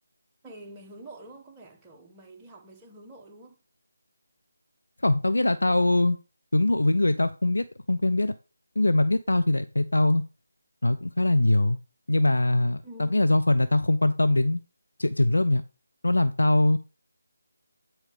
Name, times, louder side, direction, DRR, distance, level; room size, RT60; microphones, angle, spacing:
voice 1, 0.4-3.6 12.8-13.3, right 1 dB, 10° right, 0.9 m, -47 dB
voice 2, 5.0-6.2 6.5-8.3 8.8-10.2 10.8-11.8 12.1-14.6 15.0-15.6 16.0-16.8, left 2 dB, 80° left, 0.5 m, -22 dB
8.7 x 4.4 x 5.0 m
figure-of-eight pair, 160°, 0 cm